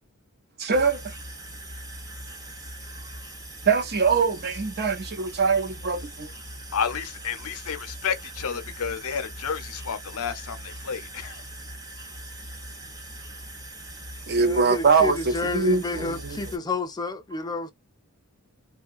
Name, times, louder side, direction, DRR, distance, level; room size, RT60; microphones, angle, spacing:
voice 1, 0.6-1.1 3.7-6.3 14.3-16.4, right 4 dB, 45° right, 0.7 m, -23 dB
sound 1, 0.7-16.6, right 1 dB, 15° right, 0.7 m, -41 dB
voice 2, 6.7-11.4, left 7 dB, 65° left, 0.6 m, -31 dB
voice 3, 14.4-17.7, left 3 dB, 20° left, 0.4 m, -30 dB
2.6 x 2.3 x 2.4 m
head